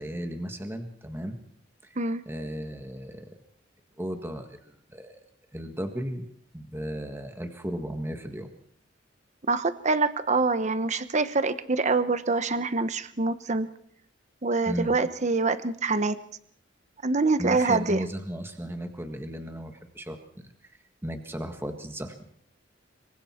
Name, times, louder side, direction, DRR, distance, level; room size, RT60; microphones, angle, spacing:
voice 1, 0.0-1.4 1.8-1.9 2.2-3.4 4.0-5.2 5.5-6.2 6.5-8.5 14.6-14.9 17.4-20.5 21.0-22.1, equal, 10° right, 5 dB, 1.7 m, -35 dB
voice 2, 9.5-13.7 14.4-16.2 17.0-18.0, right 3 dB, 40° right, 12 dB, 1.0 m, -25 dB
26.0 x 24.0 x 4.5 m, 0.65 s
head